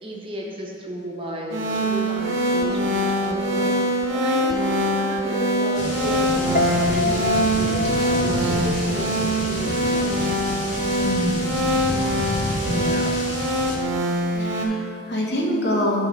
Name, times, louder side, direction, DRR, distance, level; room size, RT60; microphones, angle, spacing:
voice 1, 0.0-10.2, right 1 dB, 25° right, -2 dB, 0.9 m, -33 dB
sound 1, 1.5-14.6, right 1 dB, 80° right, 1.0 m, -23 dB
sound 2, 5.7-13.8, left 1 dB, 75° left, 1.5 m, -29 dB
Piano, 6.5-9.6 9.9-10.4, left 4 dB, 45° left, 0.4 m, -27 dB
voice 2, 11.0-11.6 12.7-13.1 14.3-16.1, equal, 60° left, 0 dB, 1.0 m, -26 dB
8.8 x 3.7 x 5.2 m, 2.6 s
head